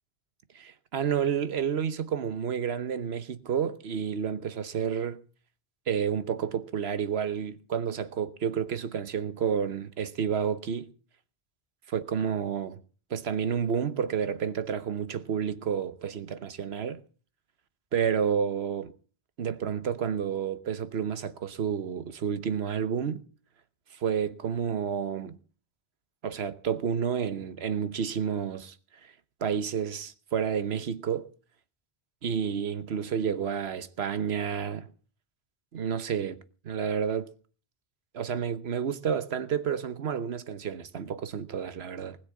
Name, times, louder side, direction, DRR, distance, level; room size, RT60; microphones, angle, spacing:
voice 1, 0.5-5.2 5.9-10.9 11.9-12.8 13.1-17.0 17.9-18.9 19.4-23.2 23.9-25.4 26.2-28.7 29.0-29.1 29.4-31.3 32.2-34.9 35.7-36.4 36.6-37.3 38.1-42.2, right 7 dB, 90° right, 1.3 m, -30 dB
20.0 x 6.7 x 8.5 m
omnidirectional pair, 1.0 m